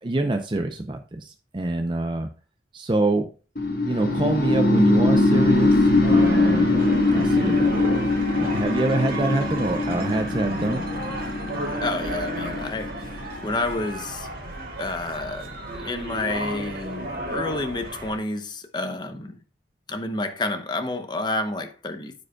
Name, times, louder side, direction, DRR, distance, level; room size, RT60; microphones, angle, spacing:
voice 1, 0.0-2.3 2.7-3.3 3.8-6.7 7.1-7.8 8.4-10.8, right 2 dB, 25° right, 0.6 m, -25 dB
sound 1, 3.6-13.5, left 2 dB, 50° left, 1.4 m, -22 dB
sound 2, 5.3-18.2, right 1 dB, 55° right, 2.1 m, -33 dB
voice 2, 11.8-14.3 14.8-19.3 19.9-22.1, left 2 dB, 25° left, 0.8 m, -30 dB
14.0 x 5.2 x 2.3 m
head